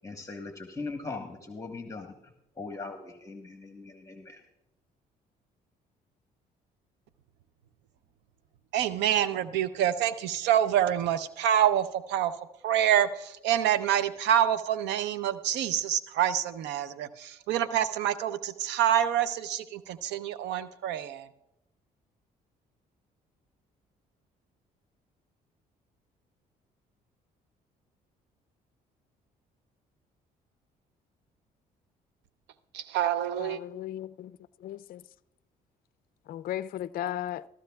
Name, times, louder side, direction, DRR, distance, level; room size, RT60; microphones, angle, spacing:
voice 1, 0.0-4.4, left 3 dB, 20° left, 1.2 m, -40 dB
voice 2, 8.7-12.3 12.6-21.3 32.7-33.6, right 10 dB, 80° right, 0.6 m, -27 dB
voice 3, 33.4-35.0 36.3-37.5, left 12 dB, 55° left, 0.4 m, -36 dB
15.5 x 14.0 x 2.3 m
supercardioid pair, 65°, 18 cm